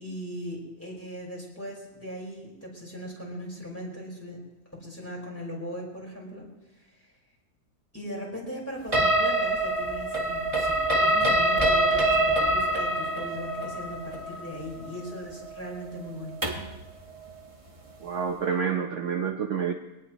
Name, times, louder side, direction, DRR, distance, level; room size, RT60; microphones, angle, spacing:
voice 1, 0.0-4.4 4.8-6.4 6.9-7.1 7.9-16.4, equal, 10° left, -3 dB, 5.1 m, -39 dB
sound 1, 8.9-16.8, right 1 dB, 20° right, 1.5 m, -25 dB
voice 2, 18.0-19.7, right 6 dB, 55° right, 4 dB, 1.2 m, -28 dB
23.5 x 18.5 x 3.1 m, 0.99 s
omnidirectional pair, 1.7 m